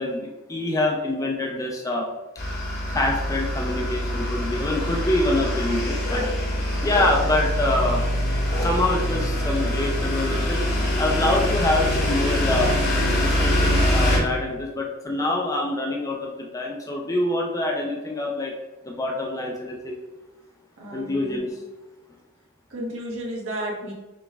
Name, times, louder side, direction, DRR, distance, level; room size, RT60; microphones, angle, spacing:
voice 1, 0.0-2.1 2.9-6.3 6.8-8.0 8.6-10.6 11.0-12.7 13.2-18.5 18.8-20.0 20.9-21.6, left 2 dB, 15° left, 0 dB, 0.4 m, -25 dB
sound 1, 2.4-14.2, equal, 50° left, 1.0 m, -24 dB
voice 2, 6.7-7.0 20.8-21.5 22.7-23.9, right 1 dB, 70° right, -3 dB, 1.1 m, -33 dB
5.2 x 2.3 x 3.3 m, 1.1 s
head